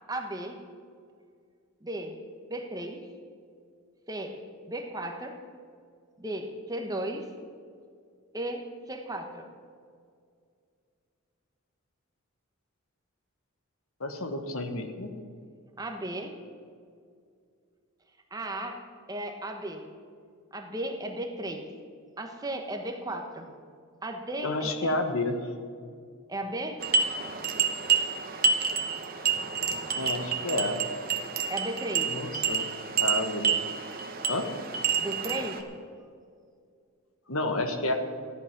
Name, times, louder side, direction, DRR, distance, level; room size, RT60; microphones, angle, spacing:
voice 1, 0.1-0.6 1.8-2.2 2.5-3.0 4.1-4.4 4.7-5.4 6.2-7.3 8.3-9.5 15.8-16.4 18.3-18.8 19.1-19.9 20.5-21.7 22.2-23.5 24.0-25.0 26.3-26.9 31.5-32.1 35.0-35.6, right 1 dB, 15° right, 4 dB, 1.1 m, -35 dB
voice 2, 14.0-15.1 24.4-25.5 30.0-30.8 32.0-32.6 33.0-33.6 34.3-34.5 37.3-37.9, left 2 dB, 75° left, 6 dB, 1.4 m, -30 dB
sound 1, 26.8-35.6, right 6 dB, 40° right, 1.1 m, -29 dB
14.0 x 11.0 x 6.0 m, 2.2 s
head